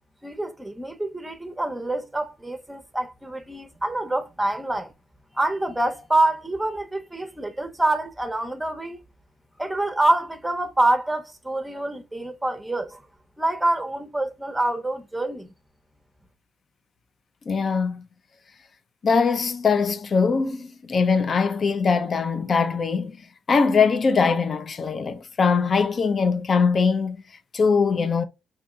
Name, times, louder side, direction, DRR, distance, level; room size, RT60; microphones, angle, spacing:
voice 1, 0.2-4.9 5.4-9.0 9.6-13.0 13.4-15.5, right 2 dB, 10° right, 0.7 m, -26 dB
voice 2, 17.5-18.0 19.0-23.2 23.5-27.2 27.5-28.2, left 5 dB, 45° left, 0.5 m, -21 dB
5.3 x 2.7 x 2.3 m
cardioid pair, 90°, 0 cm